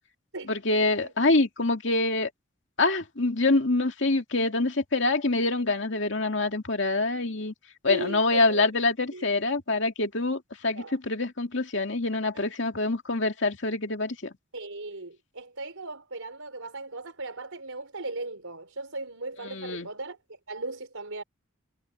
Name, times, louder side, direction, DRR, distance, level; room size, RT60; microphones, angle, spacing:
voice 1, 0.5-2.3 2.8-7.5 7.8-14.3 19.4-19.9, left 2 dB, 60° left, 2.4 m, -25 dB
voice 2, 7.9-8.8 9.1-9.2 10.7-11.0 12.3-12.4 14.5-21.2, right 2 dB, 90° right, 5.2 m, -37 dB
head